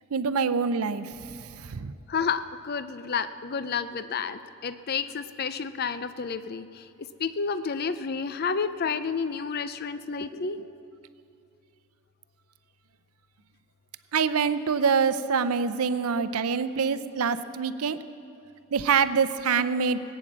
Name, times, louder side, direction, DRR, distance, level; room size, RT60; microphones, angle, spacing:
voice 1, 0.1-1.9 14.1-18.0 18.7-20.0, right 6 dB, 85° right, 13 dB, 0.6 m, -25 dB
voice 2, 2.1-6.9 7.2-10.7, left 5 dB, 45° left, 12 dB, 0.5 m, -30 dB
18.5 x 8.9 x 7.4 m, 2.6 s
head